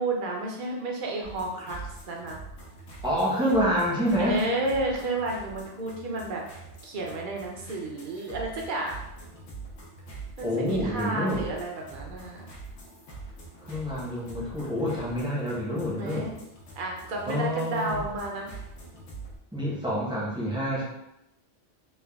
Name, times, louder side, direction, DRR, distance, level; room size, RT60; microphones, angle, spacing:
voice 1, 0.0-2.4 4.2-6.4 6.8-9.0 10.4-12.5 15.7-16.3 16.8-18.6, right 2 dB, 60° right, 0 dB, 0.6 m, -31 dB
sound 1, 1.2-19.4, right 3 dB, 80° left, 1.0 m, -44 dB
voice 2, 3.0-4.4 10.4-11.4 13.6-16.3 17.3-18.0 19.5-20.8, equal, 5° right, -7 dB, 0.6 m, -27 dB
3.2 x 2.2 x 2.2 m, 0.84 s
omnidirectional pair, 1.1 m